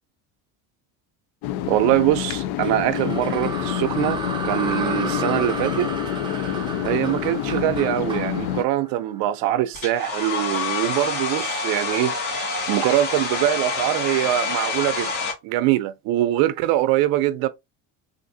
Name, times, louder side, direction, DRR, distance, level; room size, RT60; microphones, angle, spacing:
sound 1, 1.4-8.6, left 12 dB, 70° left, 0.5 m, -27 dB
voice 1, 1.7-5.9 6.3-6.6 6.8-15.1 15.4-17.5, right 14 dB, 70° right, 0.5 m, -23 dB
sound 2, 2.6-9.8, right 4 dB, 15° right, 0.5 m, -32 dB
Domestic sounds home sounds, 9.7-15.3, left 4 dB, 55° left, 1.7 m, -27 dB
3.5 x 2.5 x 2.6 m
cardioid pair, 140°, 38 cm